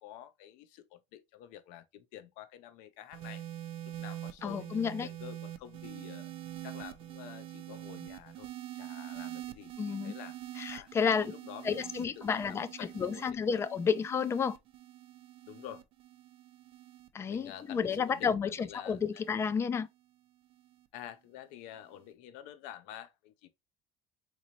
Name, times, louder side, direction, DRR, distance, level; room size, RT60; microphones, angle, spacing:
voice 1, 0.0-3.4 3.9-6.3 6.6-10.4 10.7-10.9 11.2-13.6 15.5-15.8 17.3-19.3 20.9-23.5, left 11 dB, 75° left, 0.5 m, -49 dB
sound 1, 3.1-19.6 20.5-20.9, right 13 dB, 40° right, 0.5 m, -45 dB
voice 2, 4.4-5.1 9.8-10.1 10.6-11.3 11.6-14.6 17.1-19.9, left 6 dB, 20° left, 0.3 m, -31 dB
3.9 x 3.0 x 2.6 m
cardioid pair, 160°, 13 cm